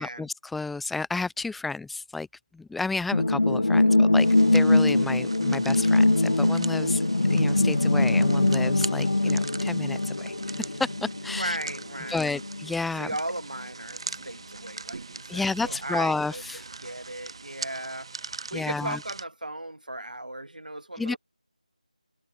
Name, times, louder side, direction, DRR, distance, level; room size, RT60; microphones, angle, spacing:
voice 1, 0.0-2.3 2.5-7.0 7.3-11.6 12.1-13.1 15.3-16.7 18.5-19.0 21.0-21.1, left 3 dB, ahead, 0.5 m, -31 dB
sound 1, 3.1-12.7 13.0-13.1, left 2 dB, 70° left, 1.1 m, -22 dB
sound 2, 4.2-19.2, right 4 dB, 40° right, 3.0 m, -41 dB
voice 2, 11.3-12.4 13.0-21.2, right 1 dB, 85° right, 6.3 m, -36 dB
figure-of-eight pair, 165°, 4 cm